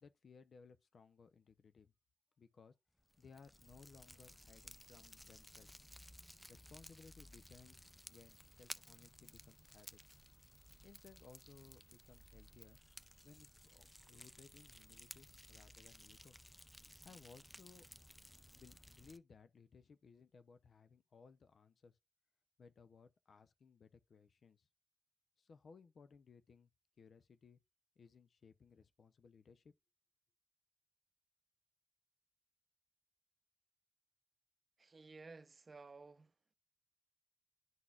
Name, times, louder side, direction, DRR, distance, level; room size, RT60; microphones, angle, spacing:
voice 1, 0.0-1.9 2.4-2.7 3.2-5.7 6.5-10.0 10.8-12.8 13.2-16.3 17.0-17.8 18.3-22.0 22.6-24.7 25.4-26.7 27.0-27.6 28.0-29.7, left 5 dB, 80° left, 0.5 m, -62 dB
Fire, 3.0-19.2, equal, 5° left, 0.4 m, -58 dB
voice 2, 34.8-36.4, right 3 dB, 50° right, 0.5 m, -55 dB
11.0 x 4.0 x 2.3 m
wide cardioid pair, 105°, 0 cm